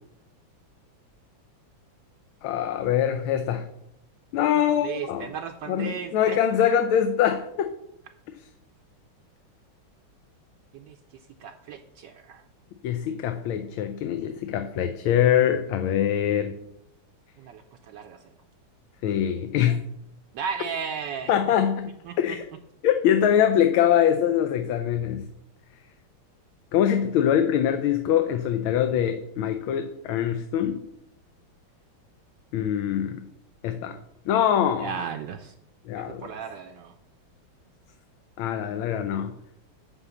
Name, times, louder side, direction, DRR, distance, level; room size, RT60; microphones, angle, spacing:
voice 1, 2.4-3.6 4.3-5.3 5.7-7.7 8.4-8.5 12.8-16.5 19.0-19.8 21.3-21.9 22.2-22.4 22.8-25.2 26.7-30.8 32.5-33.2 33.6-34.0 34.3-35.0 35.8-36.3 38.4-39.3, left 9 dB, 80° left, 7 dB, 1.4 m, -23 dB
voice 2, 4.7-6.4 10.7-11.0 11.4-12.4 17.4-18.2 20.3-21.3 22.1-22.4 34.8-35.5 35.9-36.9, right 7 dB, 75° right, 6 dB, 1.1 m, -35 dB
9.9 x 3.6 x 7.0 m, 0.78 s
omnidirectional pair, 2.2 m